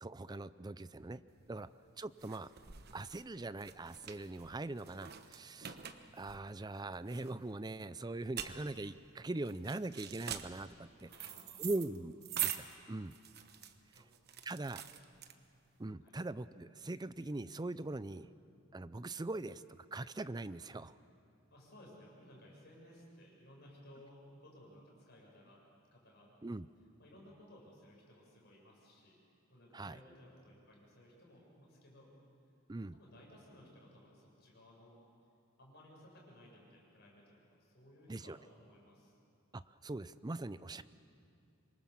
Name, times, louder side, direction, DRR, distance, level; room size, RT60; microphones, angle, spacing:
voice 1, 0.0-1.2 1.5-1.7 2.0-2.5 2.9-5.8 6.1-11.1 11.6-13.1 14.0-14.1 14.4-14.8 15.8-18.3 18.7-20.9 26.4-26.7 29.7-30.0 32.7-33.0 38.1-38.4 39.5-40.8, right 2 dB, 20° right, 15 dB, 0.5 m, -42 dB
sound 1, 1.4-15.8, right 10 dB, 50° right, 1.2 m, -45 dB
voice 2, 11.0-11.8 14.0-14.6 16.0-16.2 21.5-25.6 25.9-26.3 27.0-29.2 29.5-32.1 32.9-35.0 35.6-39.1, left 1 dB, 55° left, -2 dB, 7.4 m, -59 dB
26.0 x 23.0 x 7.3 m, 2.5 s
head